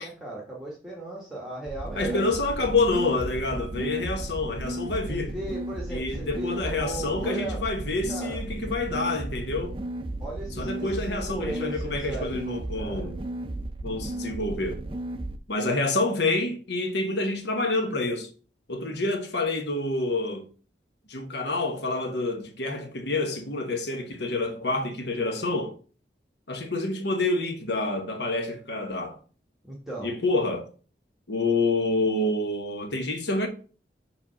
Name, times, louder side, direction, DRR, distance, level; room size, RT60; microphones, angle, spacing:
voice 1, 0.0-2.2 5.1-7.6 8.1-8.4 10.2-13.1 29.6-30.2, right 2 dB, ahead, 1.1 m, -37 dB
sound 1, 1.7-15.4, right 1 dB, 30° right, 0.4 m, -34 dB
voice 2, 1.9-5.3 5.9-9.8 10.6-13.2 13.8-14.8 15.5-18.3 18.7-20.4 21.1-25.8 26.5-29.2 30.0-30.7 31.3-33.5, left 2 dB, 75° left, 1.1 m, -28 dB
4.9 x 3.5 x 5.5 m
head